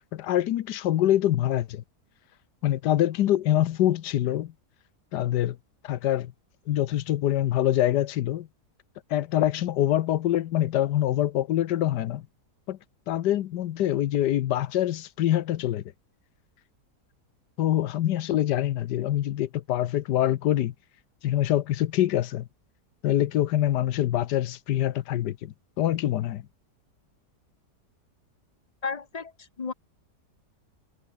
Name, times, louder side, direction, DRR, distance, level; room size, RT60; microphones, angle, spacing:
voice 1, 0.1-1.8 2.6-4.5 5.1-5.6 5.8-6.3 6.7-8.5 9.1-12.2 12.7-12.8 13.1-15.8 17.6-20.7 21.2-22.5 23.0-26.4, left 12 dB, 90° left, 1.4 m, -25 dB
voice 2, 28.8-29.3 29.6-29.7, left 5 dB, 30° left, 0.9 m, -32 dB
omnidirectional pair, 1.8 m